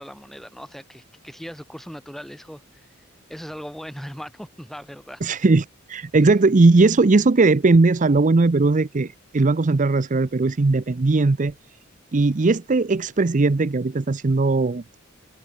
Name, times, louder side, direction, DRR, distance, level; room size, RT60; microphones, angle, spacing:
voice 1, 0.0-2.9 3.3-5.2, equal, ahead, 4.5 m, -39 dB
voice 2, 5.2-11.5 12.1-14.8, right 3 dB, 40° right, 0.6 m, -18 dB
head